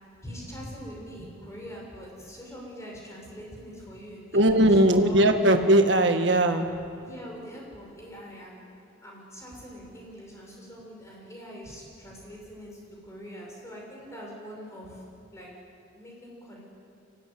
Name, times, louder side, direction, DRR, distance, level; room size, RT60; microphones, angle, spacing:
voice 1, 0.2-5.2 6.9-8.6 9.0-15.0 15.3-15.5 15.9-16.6, equal, 15° left, -3 dB, 6.0 m, -43 dB
voice 2, 4.3-6.7, right 1 dB, 65° right, 5 dB, 1.8 m, -19 dB
24.0 x 16.5 x 9.9 m, 2.6 s
head